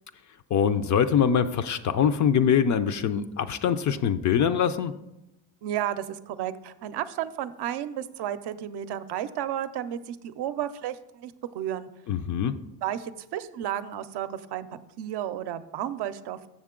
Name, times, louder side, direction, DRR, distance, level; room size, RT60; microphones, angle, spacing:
voice 1, 0.5-4.9 12.1-12.6, left 8 dB, 45° left, 11 dB, 0.4 m, -23 dB
voice 2, 5.6-11.9 12.8-16.4, right 11 dB, 70° right, 11 dB, 0.5 m, -32 dB
7.3 x 6.5 x 3.7 m, 0.90 s
cardioid pair, 120°, 41 cm